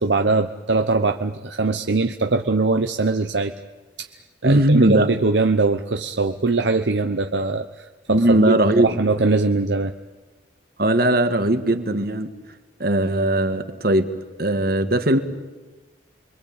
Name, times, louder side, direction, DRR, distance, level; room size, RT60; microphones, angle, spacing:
voice 1, 0.0-3.5 4.4-9.9, right 3 dB, 75° right, 6 dB, 0.9 m, -21 dB
voice 2, 4.4-5.1 8.1-9.0 10.8-12.3 12.8-14.1 14.4-15.2, right 1 dB, 55° right, 8 dB, 1.8 m, -19 dB
29.0 x 22.5 x 8.8 m, 1.2 s
head